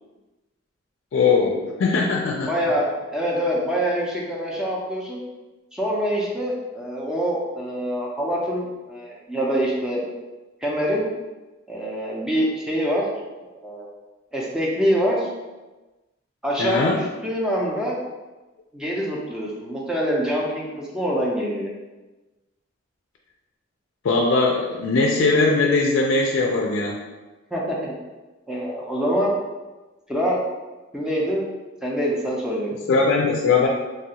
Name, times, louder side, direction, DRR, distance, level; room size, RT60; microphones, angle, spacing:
voice 1, 1.1-2.5 16.6-17.0 24.0-27.0 32.9-33.7, left 3 dB, 65° left, 0 dB, 0.3 m, -20 dB
voice 2, 2.4-5.2 5.7-10.0 10.6-11.1 11.7-13.1 13.4-13.9 14.3-15.3 16.4-18.0 18.7-21.7 27.5-27.9 28.5-29.3 30.1-30.4 30.9-31.5 31.8-33.1, equal, 5° right, -4 dB, 0.4 m, -25 dB
3.2 x 2.3 x 2.8 m, 1.1 s
head